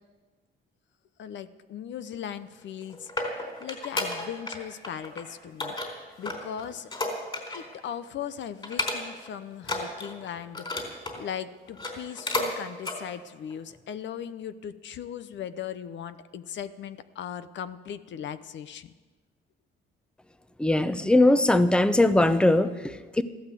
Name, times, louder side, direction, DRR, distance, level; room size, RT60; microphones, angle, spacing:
voice 1, 1.2-3.3 3.6-5.7 6.2-6.9 7.5-18.9, left 9 dB, 65° left, 13 dB, 0.8 m, -38 dB
sound 1, 2.6-4.6 4.8-5.2 5.6-7.8 8.1-8.2 8.6-9.3 9.6-11.2 11.7-12.5 12.8-13.0 13.5-13.6, left 2 dB, 25° left, 4.1 m, -32 dB
voice 2, 20.6-23.2, left 1 dB, 5° left, 12 dB, 0.8 m, -21 dB
15.0 x 12.5 x 7.7 m, 1.3 s
cardioid pair, 90°, 20 cm